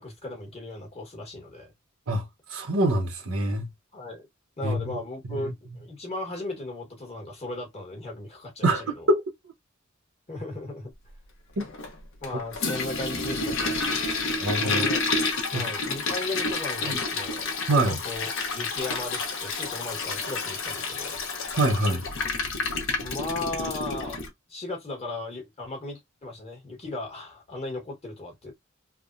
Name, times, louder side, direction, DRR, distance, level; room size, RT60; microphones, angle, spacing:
voice 1, 0.0-1.7 3.9-4.3 4.6-9.1 10.3-10.9 12.2-13.8 14.6-15.0 15.5-21.2 23.0-24.2 24.5-28.5, left 2 dB, 30° left, 1.2 m, -36 dB
voice 2, 2.1-3.7 4.6-5.0 5.2-5.5 8.6-9.2 11.6-11.7 14.4-14.8 15.5-15.7 16.8-17.0 17.7-18.0 21.6-22.1, right 1 dB, 85° right, 1.0 m, -25 dB
Toilet flush, 11.6-24.3, left 3 dB, 65° left, 0.9 m, -30 dB
3.4 x 2.1 x 2.5 m
head